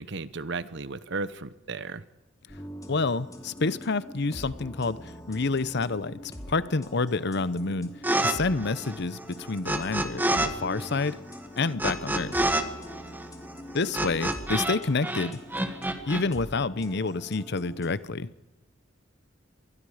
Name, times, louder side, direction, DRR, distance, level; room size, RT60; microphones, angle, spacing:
voice 1, 0.0-2.0, right 3 dB, 65° right, 15 dB, 1.0 m, -34 dB
sound 1, 2.5-17.9, equal, 20° left, 2.6 m, -43 dB
voice 2, 2.9-7.9 8.2-11.2 11.5-12.3 13.7-15.4 16.1-18.3, left 3 dB, 60° left, 16 dB, 0.8 m, -28 dB
sound 2, 8.0-8.3 8.6-10.5 10.7-14.8 15.0-16.2, right 1 dB, 10° right, 1.7 m, -28 dB
25.5 x 20.5 x 5.0 m, 1.0 s
head